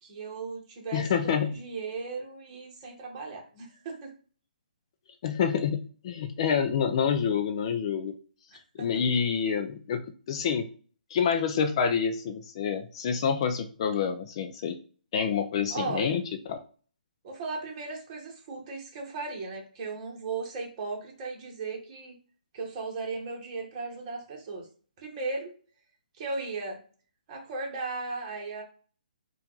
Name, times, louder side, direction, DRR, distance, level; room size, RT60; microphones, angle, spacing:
voice 1, 0.0-4.1 8.8-9.0 15.7-16.2 17.2-22.2 22.5-24.7 25.0-25.5 26.2-26.8 27.3-28.6, right 3 dB, 30° right, 0 dB, 1.5 m, -36 dB
voice 2, 0.9-1.5 5.2-8.1 8.7-10.7 11.1-14.8 15.1-16.2 16.5-16.6, left 7 dB, 35° left, 6 dB, 0.5 m, -27 dB
4.3 x 2.5 x 3.9 m, 0.40 s
hypercardioid pair, 160°, 5 cm